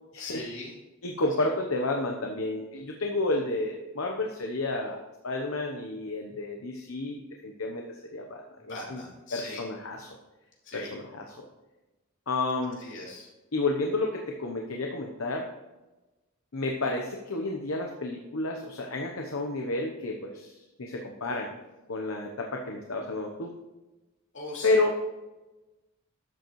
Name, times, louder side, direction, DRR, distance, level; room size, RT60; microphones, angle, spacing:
voice 1, 0.2-0.7 8.6-9.6 10.6-10.9 12.8-13.3 21.2-21.4 24.3-24.8, left 2 dB, 65° left, -3 dB, 3.0 m, -40 dB
voice 2, 1.0-5.0 5.2-7.8 8.1-9.0 9.3-10.2 10.7-11.5 12.3-12.8 13.5-15.5 16.5-21.5 21.9-23.5 24.6-24.9, left 2 dB, 80° left, 2 dB, 0.9 m, -31 dB
12.0 x 7.9 x 3.1 m, 1.1 s
head